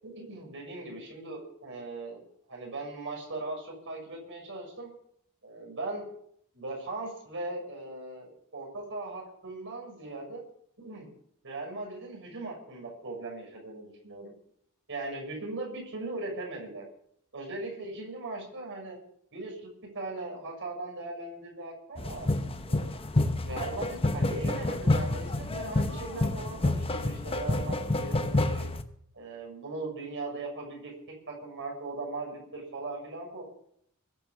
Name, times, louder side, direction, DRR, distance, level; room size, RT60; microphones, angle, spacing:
voice 1, 0.0-2.2 2.5-4.9 5.4-6.1 6.5-10.4 10.8-11.1 11.4-14.3 14.9-16.8 17.3-19.0 19.3-22.3 22.7-22.9 23.4-28.6 29.1-30.9 31.3-33.4, right 2 dB, 60° right, -1 dB, 6.3 m, -39 dB
sound 1, 22.0-28.8, left 2 dB, 25° left, 0.9 m, -28 dB
21.5 x 7.2 x 7.4 m, 0.68 s
head